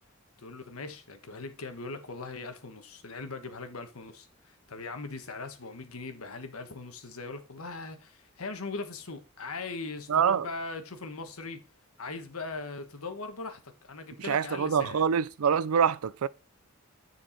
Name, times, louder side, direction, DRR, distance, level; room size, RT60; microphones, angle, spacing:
voice 1, 0.4-11.6 12.0-15.0, left 3 dB, 85° left, 1.3 m, -40 dB
voice 2, 10.1-10.5 14.2-16.3, right 7 dB, 90° right, 0.4 m, -25 dB
10.0 x 4.6 x 4.4 m
head